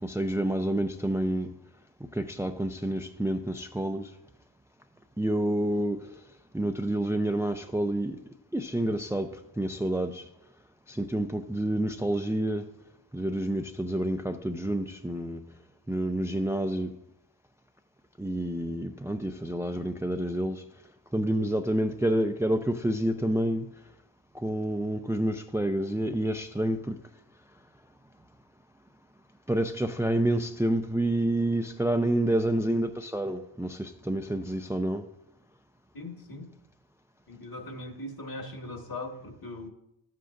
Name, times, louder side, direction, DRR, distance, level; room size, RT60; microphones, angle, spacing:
voice 1, 0.0-1.5 2.1-4.1 5.2-6.1 6.5-8.2 8.5-9.3 9.6-10.3 10.9-12.6 13.1-15.4 15.9-16.9 18.2-20.6 21.1-23.7 24.3-27.0 29.5-35.1, right 1 dB, 5° right, 6 dB, 0.5 m, -28 dB
voice 2, 35.9-36.5 37.3-39.7, left 2 dB, 50° left, 3 dB, 1.9 m, -40 dB
12.5 x 7.8 x 2.6 m, 0.84 s
cardioid pair, 50°, 47 cm